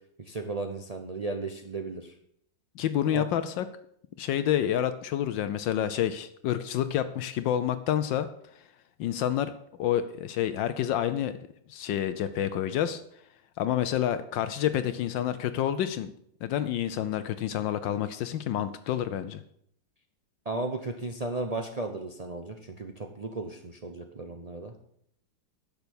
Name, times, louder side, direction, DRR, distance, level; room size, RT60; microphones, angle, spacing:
voice 1, 0.2-2.1 3.1-3.3 20.5-24.7, right 2 dB, 75° right, 4 dB, 0.3 m, -35 dB
voice 2, 2.8-3.7 4.2-8.3 9.0-9.5 9.8-11.3 11.7-13.0 13.6-16.1 16.4-19.4, left 10 dB, 75° left, 11 dB, 1.3 m, -28 dB
10.5 x 6.8 x 7.0 m, 0.68 s
omnidirectional pair, 2.1 m